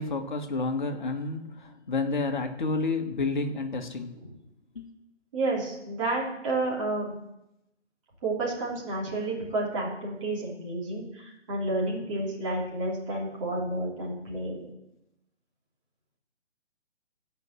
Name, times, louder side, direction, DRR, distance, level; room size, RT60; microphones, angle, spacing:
voice 1, 0.0-4.2 4.7-4.9, left 3 dB, 40° left, 4 dB, 1.6 m, -30 dB
voice 2, 5.3-7.2 8.2-14.6, right 2 dB, 25° right, -4 dB, 3.0 m, -30 dB
14.0 x 5.7 x 7.7 m, 0.87 s
figure-of-eight pair, 145°, 35 cm